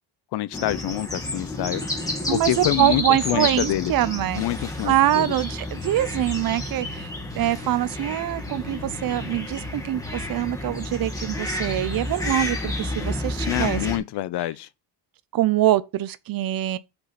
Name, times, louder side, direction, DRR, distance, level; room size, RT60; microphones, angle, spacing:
voice 1, 0.3-1.8 2.3-3.9 4.3-5.3 13.5-14.7, left 15 dB, 70° left, 0.6 m, -26 dB
sound 1, 0.5-14.0, left 2 dB, 10° left, 1.8 m, -30 dB
voice 2, 2.3-4.4 4.8-13.8 15.3-16.8, right 13 dB, 55° right, 0.6 m, -24 dB
5.5 x 4.1 x 5.8 m
cardioid pair, 150°, 41 cm